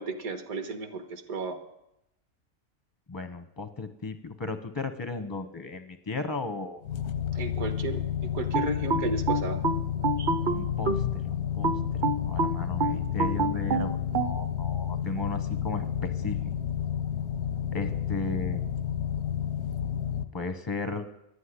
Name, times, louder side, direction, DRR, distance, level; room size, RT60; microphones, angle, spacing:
voice 1, 0.0-1.6 7.3-9.6, right 3 dB, 75° right, 7 dB, 1.8 m, -34 dB
voice 2, 3.1-6.8 10.5-11.7 12.0-16.4 17.7-18.6 20.3-21.1, left 3 dB, 25° left, 8 dB, 0.4 m, -35 dB
sound 1, 6.8-20.2, left 9 dB, 85° left, 1.2 m, -31 dB
sound 2, 8.5-11.1 11.6-14.3, right 3 dB, 45° right, 0.7 m, -27 dB
11.5 x 8.3 x 9.8 m, 0.84 s
omnidirectional pair, 1.6 m